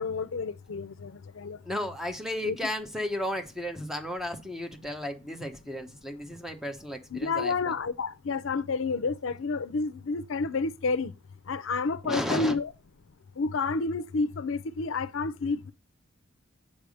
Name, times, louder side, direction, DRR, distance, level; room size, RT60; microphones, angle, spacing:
voice 1, 0.0-1.6 2.4-2.6 7.1-11.1 11.5-12.7 13.4-15.7, left 4 dB, 75° left, 0.5 m, -30 dB
voice 2, 1.6-7.7 12.0-12.6, left 1 dB, ahead, 0.9 m, -34 dB
8.4 x 3.4 x 6.3 m
head